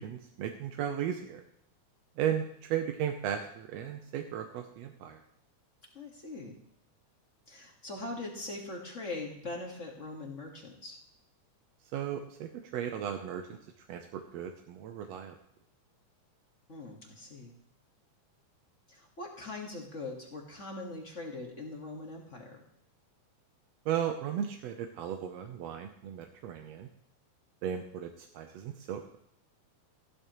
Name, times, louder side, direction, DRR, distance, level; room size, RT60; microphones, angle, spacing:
voice 1, 0.0-1.4 2.2-5.2 11.9-15.4 23.8-26.9 27.6-29.2, right 9 dB, 70° right, 5 dB, 1.7 m, -36 dB
voice 2, 5.9-6.5 7.5-11.0 16.7-17.5 18.9-22.6, left 2 dB, 35° left, 0 dB, 1.3 m, -41 dB
14.5 x 12.5 x 3.0 m, 0.74 s
omnidirectional pair, 3.6 m